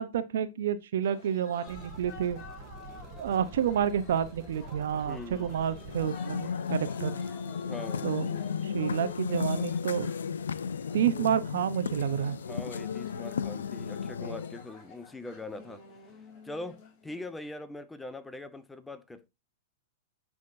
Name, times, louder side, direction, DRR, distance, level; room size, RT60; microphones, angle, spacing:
voice 1, 0.0-2.4 3.2-7.1 8.0-8.3 8.6-10.1 10.9-12.4, right 9 dB, 70° right, 0.8 m, -29 dB
sound 1, 1.0-17.4, left 4 dB, 40° left, 2.9 m, -51 dB
sound 2, 1.7-6.1, right 3 dB, 35° right, 1.4 m, -47 dB
voice 2, 5.1-5.6 7.6-8.1 12.5-15.8 16.4-19.3, left 2 dB, 5° left, 0.6 m, -42 dB
sound 3, 5.8-14.7, left 6 dB, 85° left, 0.3 m, -34 dB
10.5 x 3.6 x 2.6 m
hypercardioid pair, 120°, 0 cm